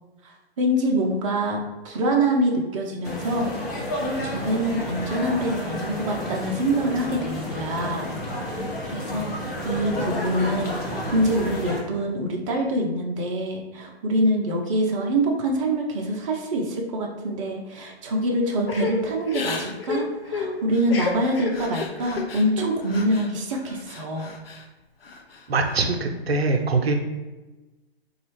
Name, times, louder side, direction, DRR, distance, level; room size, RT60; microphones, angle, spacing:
voice 1, 0.6-3.5 3.8-8.1 8.5-9.4 9.6-24.3, right 1 dB, 30° right, -1 dB, 0.5 m, -25 dB
sound 1, 3.0-11.8, left 1 dB, 20° left, 0.4 m, -31 dB
Crying sobbing / Breathing, 18.7-23.3 23.7-24.6 25.0-25.8, left 4 dB, 65° left, 0.6 m, -32 dB
voice 2, 25.5-26.9, right 3 dB, 75° right, 4 dB, 0.6 m, -23 dB
4.0 x 2.3 x 3.1 m, 1.1 s
figure-of-eight pair, 130°, 31 cm